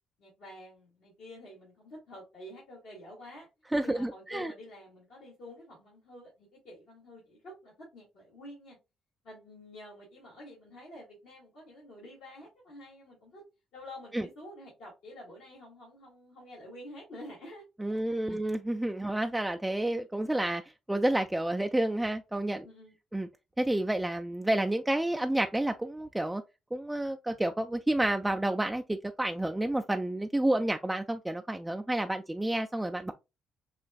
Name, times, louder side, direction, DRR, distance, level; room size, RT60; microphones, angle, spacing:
voice 1, 0.2-3.5 3.8-8.8 9.2-13.4 13.7-17.6 17.9-18.4 22.6-22.9, left 1 dB, 70° left, 2.1 m, -49 dB
voice 2, 3.7-4.5 14.1-14.3 17.8-20.6 20.9-22.7 23.1-23.3 23.6-26.4 26.7-33.1, right 1 dB, 10° right, 0.4 m, -30 dB
6.6 x 2.4 x 2.3 m
hypercardioid pair, 50°, 0 cm